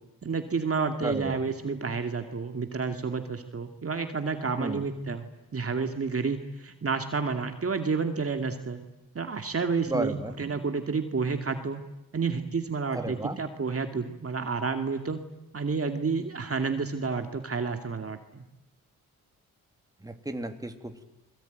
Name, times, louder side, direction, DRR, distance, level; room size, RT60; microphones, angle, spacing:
voice 1, 0.2-8.8 9.1-11.8 12.1-15.2 15.5-18.4, right 4 dB, 35° right, 6 dB, 2.4 m, -30 dB
voice 2, 1.0-1.4 4.6-4.9 9.9-10.3 12.9-13.4 20.0-21.0, right 2 dB, 10° right, 6 dB, 3.1 m, -33 dB
28.5 x 22.0 x 9.5 m, 0.89 s
cardioid pair, 75°, 38 cm